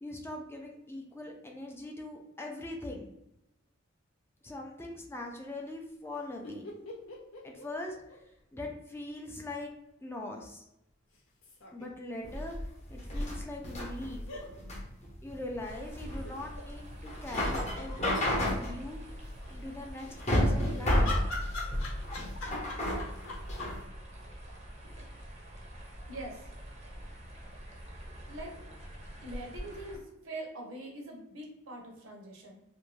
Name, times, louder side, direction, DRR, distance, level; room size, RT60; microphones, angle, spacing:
voice 1, 0.0-3.1 4.4-6.7 7.4-8.2 8.5-9.7 10.0-10.7 11.7-12.6 12.9-14.2 15.2-19.2 19.5-21.1, left 1 dB, 10° left, 1 dB, 0.3 m, -41 dB
sound 1, 6.4-8.7 8.9-9.0 11.1-11.9 13.1-13.3 14.3-14.5 16.2-16.6 17.1-17.2 17.4-18.1 20.1-23.7, left 3 dB, 85° left, 0.7 m, -42 dB
sound 2, 12.2-23.8, left 1 dB, 35° left, 0.7 m, -32 dB
sound 3, 15.6-30.0, equal, 35° right, 0.5 m, -47 dB
voice 2, 26.1-26.4 28.0-28.6 29.2-32.6, right 1 dB, 75° right, 1 dB, 0.7 m, -43 dB
2.5 x 2.1 x 3.1 m, 0.85 s
head